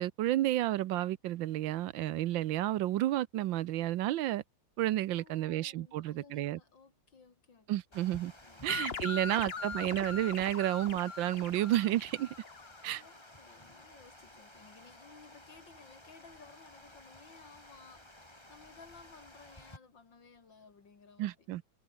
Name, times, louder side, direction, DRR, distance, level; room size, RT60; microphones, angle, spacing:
voice 1, 0.0-4.4 4.8-6.6 7.7-8.3 8.6-12.3 12.8-13.0 21.2-21.6, right 14 dB, 80° right, 1.4 m, -31 dB
voice 2, 5.1-7.7 8.4-10.0 13.0-21.5, left 5 dB, 70° left, 3.8 m, -58 dB
Water, 7.9-19.8, left 1 dB, 15° left, 3.4 m, -55 dB
sound 1, 8.7-13.0, left 5 dB, 35° left, 1.4 m, -41 dB
omnidirectional pair, 2.1 m